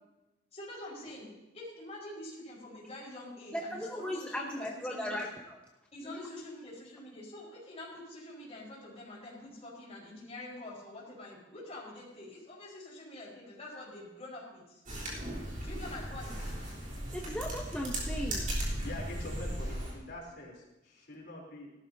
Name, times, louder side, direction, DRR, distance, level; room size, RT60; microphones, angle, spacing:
voice 1, 0.5-5.3 5.9-14.8 15.6-16.6, left 1 dB, 35° left, -4 dB, 4.8 m, -46 dB
voice 2, 3.5-5.6 6.0-6.2 17.1-18.5, equal, 5° left, -1 dB, 0.8 m, -37 dB
sound 1, 14.9-19.9, right 1 dB, 45° right, 3.5 m, -36 dB
voice 3, 18.8-21.7, left 1 dB, 60° left, -2 dB, 3.5 m, -45 dB
17.5 x 12.5 x 2.8 m, 0.99 s
head